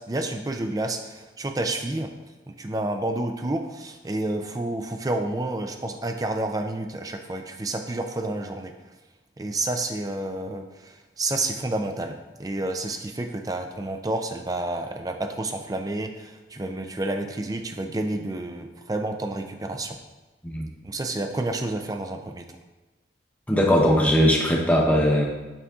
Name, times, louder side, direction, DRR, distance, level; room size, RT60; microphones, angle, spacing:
voice 1, 0.1-2.1 2.5-8.7 9.4-20.0 20.8-22.4, right 2 dB, 20° right, 5 dB, 0.4 m, -30 dB
voice 2, 23.5-25.3, equal, 10° left, -1 dB, 0.8 m, -19 dB
6.9 x 4.1 x 3.6 m, 1.2 s
head